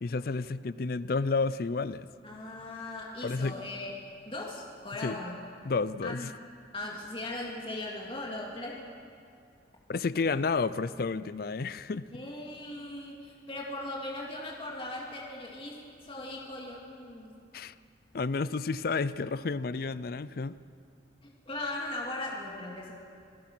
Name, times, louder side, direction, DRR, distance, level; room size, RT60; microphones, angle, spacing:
voice 1, 0.0-2.1 3.2-3.6 5.0-5.2 5.6-6.3 9.9-12.0 17.5-17.7 18.1-20.6, left 4 dB, 55° left, 16 dB, 0.4 m, -31 dB
voice 2, 2.2-3.9 4.3-5.4 6.0-6.4 6.7-8.9 12.1-17.4 21.2-23.0, left 2 dB, 30° left, -2 dB, 2.3 m, -39 dB
27.5 x 16.0 x 6.1 m, 2.4 s
head